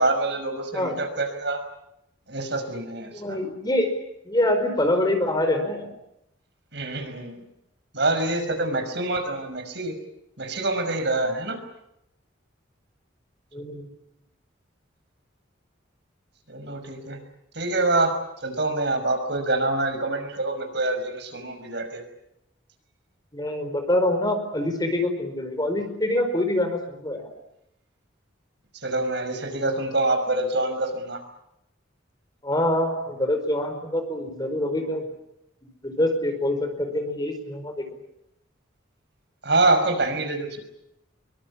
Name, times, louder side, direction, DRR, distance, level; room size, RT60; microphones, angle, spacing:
voice 1, 0.0-1.6 2.3-3.4 6.7-7.4 7.9-9.9 10.4-11.6 16.5-17.2 17.5-22.0 28.8-31.2 39.4-40.6, right 2 dB, 60° right, 7 dB, 5.7 m, -26 dB
voice 2, 3.1-3.9 4.2-5.9 13.5-13.9 23.3-27.3 32.4-35.0 35.8-37.9, left 1 dB, 20° left, 7 dB, 4.7 m, -25 dB
25.5 x 24.0 x 8.6 m, 0.82 s
head